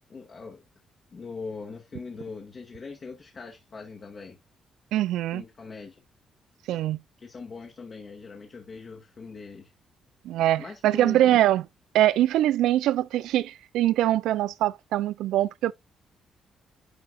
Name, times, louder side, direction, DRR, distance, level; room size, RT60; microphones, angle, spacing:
voice 1, 0.1-0.6 1.1-4.4 5.3-5.9 7.2-9.7 10.6-11.4, left 4 dB, 40° left, 1.7 m, -41 dB
voice 2, 4.9-5.4 6.7-7.0 10.2-11.6 11.9-15.7, right 13 dB, 85° right, 0.3 m, -23 dB
10.5 x 4.7 x 2.3 m
cardioid pair, 90°, 0 cm